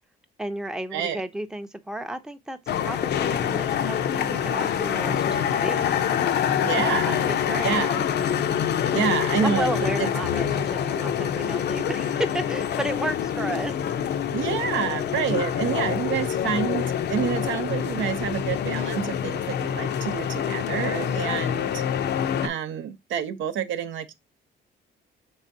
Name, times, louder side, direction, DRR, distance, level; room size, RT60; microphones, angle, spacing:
voice 1, 0.4-5.9 7.0-7.8 9.4-13.8 21.0-21.5, right 1 dB, 5° right, 0.5 m, -33 dB
sound 1, 2.7-22.5, left 9 dB, 60° left, 0.5 m, -26 dB
voice 2, 6.6-7.2 7.6-8.1 8.9-9.7 10.0-10.1 14.3-21.8 22.4-24.1, right 8 dB, 75° right, 0.6 m, -28 dB
5.4 x 3.4 x 2.6 m
cardioid pair, 90°, 20 cm